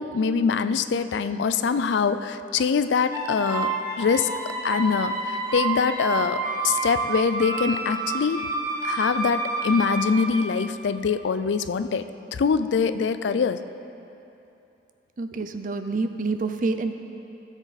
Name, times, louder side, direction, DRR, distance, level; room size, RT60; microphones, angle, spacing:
voice 1, 0.0-3.7 4.0-4.3 4.6-8.4 8.8-12.0 12.3-13.6, left 5 dB, 80° left, 12 dB, 0.4 m, -24 dB
sound 1, 3.1-11.1, right 3 dB, 15° right, 1.1 m, -29 dB
voice 2, 15.2-16.9, right 3 dB, 45° right, 8 dB, 0.5 m, -27 dB
16.0 x 7.2 x 4.1 m, 2.8 s
head